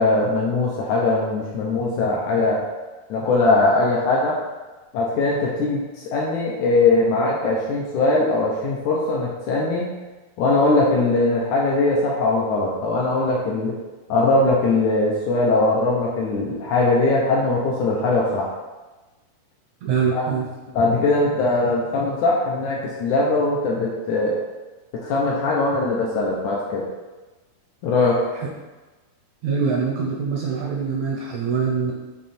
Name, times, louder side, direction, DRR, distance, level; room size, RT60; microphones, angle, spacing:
voice 1, 0.0-2.6 3.1-4.4 4.9-5.8 6.1-9.9 10.4-13.8 14.1-18.5 20.1-20.2 20.7-24.4 25.0-26.8 27.8-28.3, left 2 dB, 85° left, -4 dB, 1.7 m, -20 dB
voice 2, 19.8-20.5 28.3-28.5 29.4-31.9, right 5 dB, 85° right, -3 dB, 1.6 m, -24 dB
7.3 x 3.1 x 4.3 m, 1.2 s
omnidirectional pair, 4.4 m